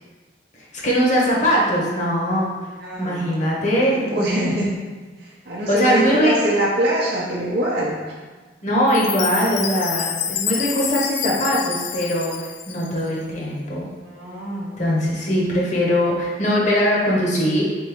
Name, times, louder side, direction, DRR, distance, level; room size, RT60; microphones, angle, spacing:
voice 1, 0.6-2.7 3.0-4.6 5.7-6.4 8.6-13.9 14.8-17.6, equal, 45° left, -4 dB, 1.0 m, -21 dB
voice 2, 2.8-3.3 3.7-4.7 5.2-8.0 14.0-14.7, right 1 dB, 60° right, -6 dB, 0.6 m, -24 dB
Chime, 8.9-13.1, left 9 dB, 70° left, 0.3 m, -28 dB
4.2 x 3.6 x 3.0 m, 1.4 s
head